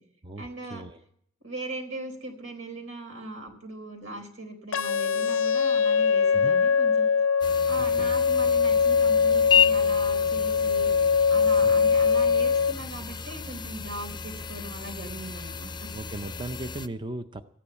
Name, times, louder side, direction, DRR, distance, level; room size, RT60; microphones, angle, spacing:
voice 1, 0.4-0.8 1.4-7.1 7.7-10.9 11.3-15.9, right 2 dB, 85° right, 3 dB, 3.9 m, -39 dB
sound 1, 4.7-12.7, left 6 dB, 80° left, 0.5 m, -22 dB
sound 2, 7.4-16.9, left 7 dB, 25° left, 0.5 m, -32 dB
voice 2, 7.8-8.2 11.6-11.7 15.9-17.4, right 2 dB, 25° right, 8 dB, 0.5 m, -37 dB
14.0 x 10.0 x 8.1 m, 0.69 s
head